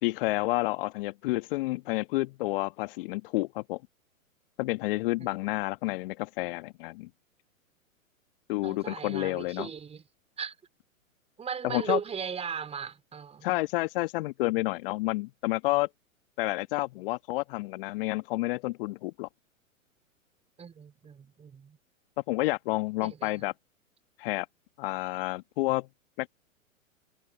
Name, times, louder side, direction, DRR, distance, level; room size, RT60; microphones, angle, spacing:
voice 1, 0.0-3.8 4.6-7.1 8.5-9.7 11.6-12.0 13.4-15.9 16.4-19.3 22.3-23.5 24.2-24.4 24.8-25.9 26.2-26.3, left 21 dB, 40° left, 1.6 m, -30 dB
voice 2, 8.6-10.0 10.4-10.6 11.4-13.6 20.6-21.8 23.0-23.4, right 7 dB, 15° right, 4.5 m, -37 dB
figure-of-eight pair, 115°, 41 cm